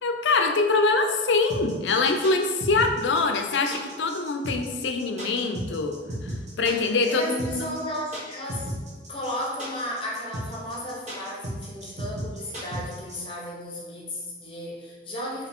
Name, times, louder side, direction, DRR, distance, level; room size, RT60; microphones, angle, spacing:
voice 1, 0.0-6.0 6.2-7.7, left 3 dB, 85° left, 5 dB, 0.5 m, -24 dB
sound 1, 1.5-13.2, right 1 dB, 40° right, 1.2 m, -34 dB
voice 2, 7.1-8.7 9.1-15.5, left 1 dB, 30° left, -3 dB, 0.8 m, -34 dB
4.8 x 2.9 x 3.6 m, 1.4 s
head